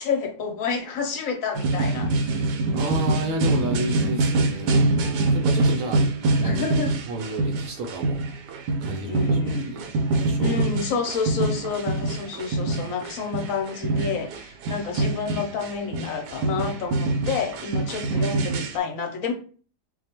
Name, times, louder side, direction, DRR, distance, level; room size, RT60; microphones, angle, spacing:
voice 1, 0.0-2.1 6.4-6.9 9.1-9.9 10.4-19.3, left 5 dB, 60° left, 1.1 m, -29 dB
sound 1, 1.5-18.8, right 2 dB, 85° right, 1.3 m, -25 dB
voice 2, 2.7-6.7 7.1-8.2 8.8-10.7, right 1 dB, 65° right, 0.8 m, -32 dB
4.6 x 2.3 x 2.9 m
omnidirectional pair, 1.8 m